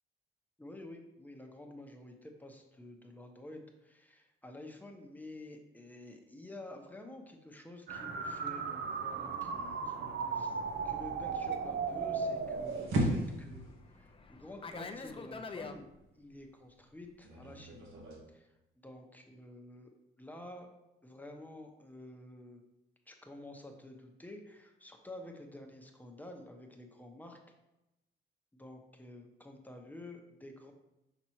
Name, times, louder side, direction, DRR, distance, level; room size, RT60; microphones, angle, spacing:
voice 1, 0.6-10.6 10.8-15.9 16.2-17.8 18.3-18.5 18.8-19.9 20.2-20.7 21.0-22.6 23.1-27.4 28.5-30.7, left 1 dB, 10° left, 2 dB, 0.9 m, -50 dB
sound 1, 7.9-12.9, right 5 dB, 60° right, 0.7 m, -36 dB
Fixed-wing aircraft airplane, 9.3-15.8, left 4 dB, 25° left, 0.5 m, -49 dB
sound 2, 10.6-18.2, right 1 dB, 80° right, 1.6 m, -39 dB
5.9 x 5.6 x 3.1 m, 0.94 s
cardioid pair, 90°, 20 cm